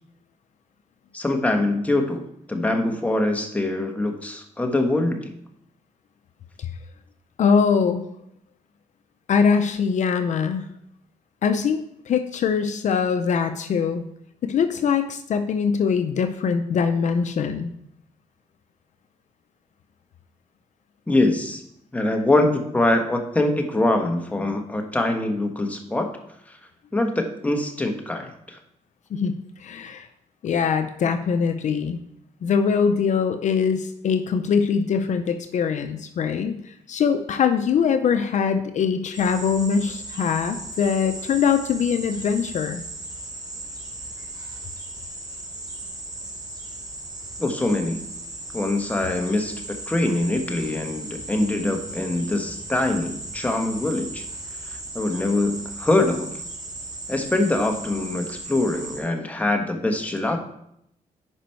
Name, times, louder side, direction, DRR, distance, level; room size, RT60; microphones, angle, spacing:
voice 1, 1.1-5.3 21.1-21.6 21.9-26.1 26.5-26.6 26.9-28.6 47.4-48.0 48.5-54.2 54.7-56.3 57.1-60.4, left 2 dB, 10° left, 3 dB, 1.4 m, -24 dB
voice 2, 7.4-8.0 9.3-10.6 11.4-14.0 14.4-17.7 29.1-30.1 30.4-32.0 32.4-42.8, left 6 dB, 65° left, 8 dB, 0.6 m, -22 dB
sound 1, 39.1-59.0, right 2 dB, 30° right, 3.4 m, -37 dB
10.0 x 5.1 x 4.5 m, 0.75 s
cardioid pair, 100°, 14 cm